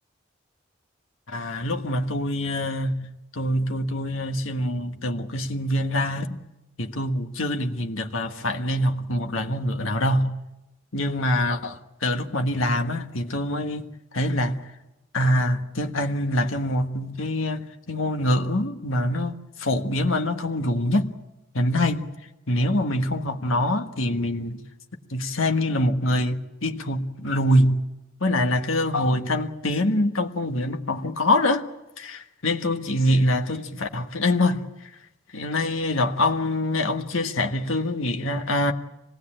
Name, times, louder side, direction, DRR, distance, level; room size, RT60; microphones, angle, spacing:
voice 1, 1.3-3.1 3.3-6.4 6.8-10.4 10.9-13.8 14.1-14.6 15.1-21.1 21.5-22.1 22.5-24.6 25.1-27.8 28.2-31.6 32.0-34.6 35.3-38.7, left 1 dB, 80° left, 1.5 m, -24 dB
25.5 x 19.0 x 8.9 m
head